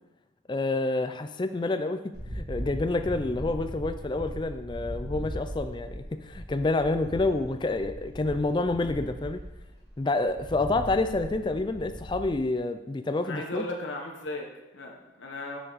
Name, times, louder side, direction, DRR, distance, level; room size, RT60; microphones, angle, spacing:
voice 1, 0.5-9.4 10.0-13.7, left 2 dB, 25° left, 9 dB, 0.3 m, -28 dB
sound 1, 2.1-12.4, equal, 60° right, 1.8 m, -39 dB
voice 2, 13.2-15.6, left 2 dB, 75° left, 1 dB, 1.1 m, -36 dB
6.7 x 6.3 x 4.0 m, 1.0 s
head